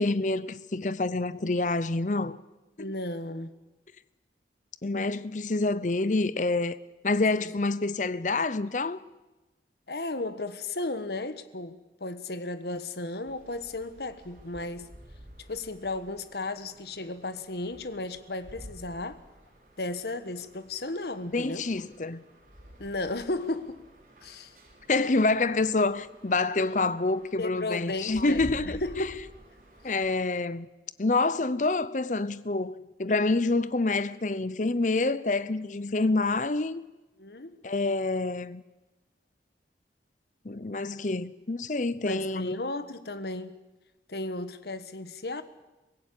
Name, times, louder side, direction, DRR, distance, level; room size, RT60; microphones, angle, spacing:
voice 1, 0.0-2.4 4.8-6.8 7.0-9.0 21.3-22.2 24.9-29.1 29.8-30.7 31.0-36.8 37.6-38.6 40.4-42.5, left 3 dB, 45° left, 0.7 m, -27 dB
voice 2, 2.8-3.5 7.3-7.5 9.9-14.9 15.5-19.2 19.8-21.7 22.8-23.8 24.2-24.6 27.4-29.2 37.2-37.6 42.0-43.6 44.1-45.4, left 2 dB, 65° left, 1.3 m, -34 dB
sound 1, 13.3-30.2, equal, 45° right, 6.5 m, -50 dB
24.0 x 17.0 x 8.5 m
head